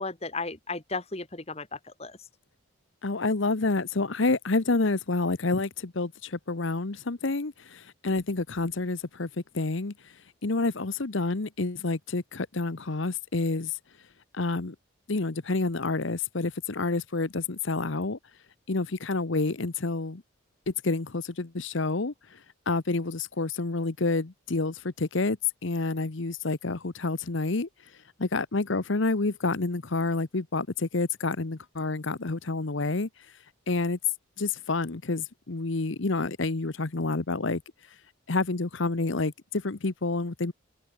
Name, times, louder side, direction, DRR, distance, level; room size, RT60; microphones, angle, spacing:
voice 1, 0.0-2.2, left 3 dB, 30° left, 1.8 m, -35 dB
voice 2, 3.0-14.1 14.3-14.7 15.1-18.2 18.7-20.2 20.7-34.0 34.4-38.0 38.3-40.5, left 3 dB, 65° left, 1.0 m, -29 dB
open air
head